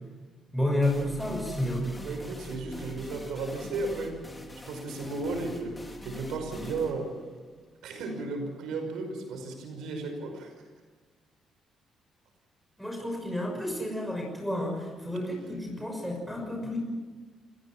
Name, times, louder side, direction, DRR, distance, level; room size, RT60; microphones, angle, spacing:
voice 1, 0.5-1.9 12.8-16.8, left 1 dB, ahead, 1 dB, 6.0 m, -30 dB
sound 1, 0.8-8.3, left 1 dB, 15° left, 3.5 m, -44 dB
voice 2, 2.0-4.2 4.5-5.8 6.0-7.1 7.8-10.5, right 3 dB, 85° right, 5 dB, 5.4 m, -34 dB
28.0 x 16.5 x 7.4 m, 1.3 s
cardioid pair, 90°, 0 cm